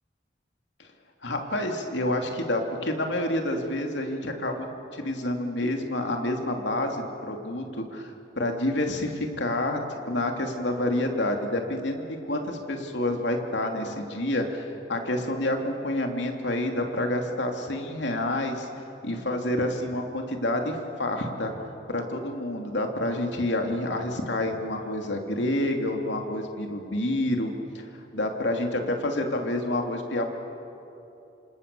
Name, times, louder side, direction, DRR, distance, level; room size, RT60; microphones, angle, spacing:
voice 1, 1.2-4.7 4.9-18.7 19.0-21.5 21.9-30.3, left 1 dB, 80° left, 3 dB, 2.9 m, -28 dB
27.0 x 27.0 x 7.0 m, 2.9 s
head